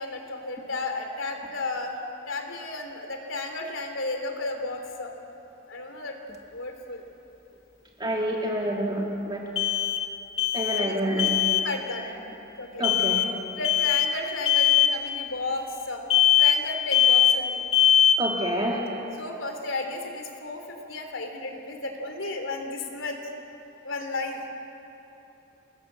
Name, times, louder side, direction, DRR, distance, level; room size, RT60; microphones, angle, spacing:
voice 1, 0.0-2.0 2.3-5.1 5.7-6.2 6.5-7.0 10.8-12.1 12.6-12.9 13.6-16.0 16.3-17.6 19.0-23.2 23.8-24.4, left 2 dB, 90° left, 4 dB, 3.2 m, -33 dB
sound 1, 6.3-6.4 9.6-10.1 10.4-10.9 11.2-11.7 12.8-13.3 13.6-14.1 14.5-15.0 16.1-16.7 16.9-17.5 17.7-18.3, left 11 dB, 30° left, 1.5 m, -21 dB
voice 2, 8.0-9.4 10.5-11.4 12.8-13.3 18.2-18.8, right 1 dB, 25° right, -2 dB, 2.1 m, -27 dB
29.0 x 19.5 x 7.6 m, 2.9 s
head